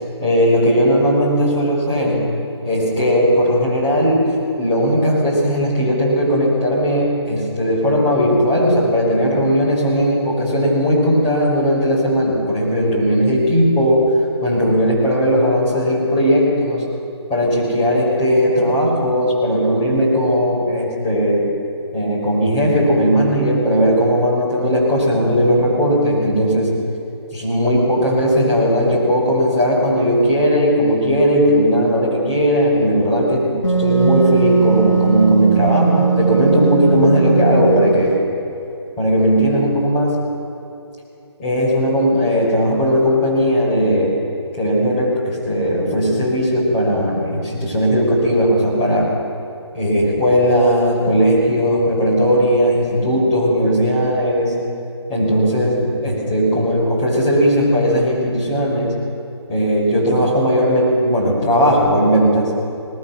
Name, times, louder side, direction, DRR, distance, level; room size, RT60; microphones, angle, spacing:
voice 1, 0.2-2.2 2.6-14.1 14.4-16.8 17.3-21.5 21.9-26.7 27.3-33.5 33.8-38.2 39.0-40.2 41.4-44.2 44.6-49.1 49.7-54.5 55.1-58.9 59.5-62.5, equal, 20° left, -6 dB, 5.7 m, -17 dB
Wind instrument woodwind instrument, 33.6-38.1, right 5 dB, 85° left, 2.9 m, -18 dB
22.0 x 19.5 x 6.1 m, 2.7 s
figure-of-eight pair, 150°, 15 cm